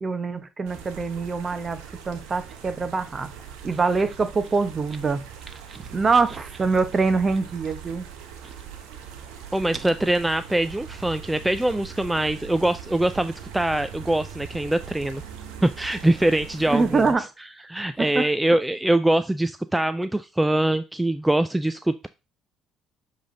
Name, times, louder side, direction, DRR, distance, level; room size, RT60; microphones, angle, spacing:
voice 1, 0.0-1.8 2.1-3.3 3.6-5.2 5.7-8.0 16.7-17.2 18.0-18.3, right 4 dB, 35° right, 11 dB, 0.9 m, -24 dB
sound 1, 0.7-17.1, right 8 dB, 85° right, 1.1 m, -41 dB
voice 2, 9.5-15.2 15.6-17.0 17.7-22.1, right 1 dB, 10° right, 11 dB, 0.4 m, -23 dB
7.4 x 3.4 x 3.8 m, 0.28 s
supercardioid pair, 65°, 0 cm